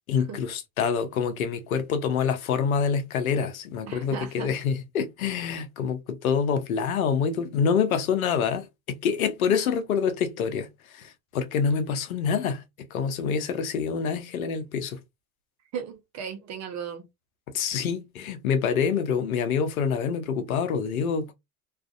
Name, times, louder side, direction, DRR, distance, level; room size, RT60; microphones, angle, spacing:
voice 1, 0.1-15.0 17.5-21.3, left 6 dB, 85° left, 0.7 m, -26 dB
voice 2, 3.9-4.5 15.7-17.0, right 7 dB, 40° right, 0.8 m, -36 dB
2.5 x 2.4 x 2.4 m
hypercardioid pair, 90°, 41 cm